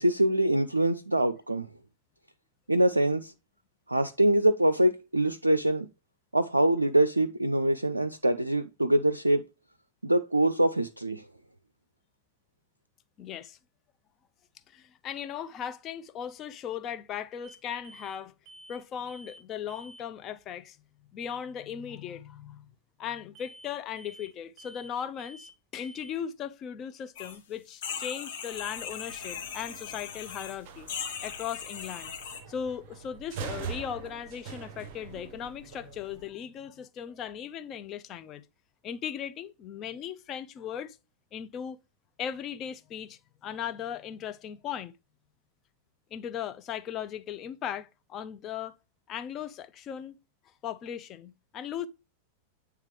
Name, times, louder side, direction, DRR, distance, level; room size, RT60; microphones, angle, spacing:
voice 1, 0.0-1.7 2.7-3.3 3.9-5.9 6.3-9.4 10.0-11.2, right 1 dB, 85° right, 0.4 m, -24 dB
voice 2, 13.2-13.6 14.7-18.3 18.7-20.8 21.1-22.7 23.0-30.9 31.2-32.1 32.5-38.4 38.8-41.0 41.3-41.8 42.2-44.9 46.1-48.8 49.1-50.1 50.6-51.9, left 9 dB, 30° left, 0.6 m, -38 dB
sound 1, 17.4-17.6 17.8-18.2 18.5-18.8 19.1-19.4 19.7-20.0 23.4-23.7 24.0-24.3 24.6-24.9 25.2-25.5 25.8-26.1, right 1 dB, 25° right, 1.4 m, -50 dB
sound 2, 27.2-27.4 27.7-30.6 30.9-32.4, left 7 dB, 55° left, 1.4 m, -39 dB
sound 3, 28.5-36.3, right 6 dB, 45° right, 0.7 m, -44 dB
8.8 x 3.4 x 3.2 m
figure-of-eight pair, 90°, 0 cm